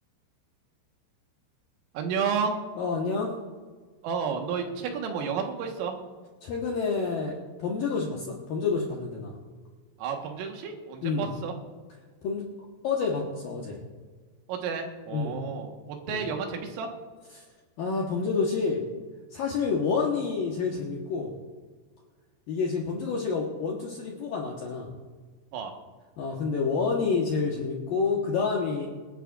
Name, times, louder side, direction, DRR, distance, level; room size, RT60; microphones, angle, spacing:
voice 1, 1.9-2.6 4.0-5.9 10.0-11.5 14.5-16.9 25.5-25.7, right 6 dB, 80° right, 3 dB, 4.1 m, -31 dB
voice 2, 2.8-3.3 6.4-9.4 11.0-11.3 12.2-12.4 12.8-13.8 15.1-15.4 16.1-16.2 17.3-17.4 17.8-18.8 19.3-21.3 22.5-24.9 26.2-28.9, left 5 dB, 70° left, -2 dB, 2.2 m, -28 dB
26.0 x 10.0 x 2.5 m, 1.5 s
omnidirectional pair, 5.8 m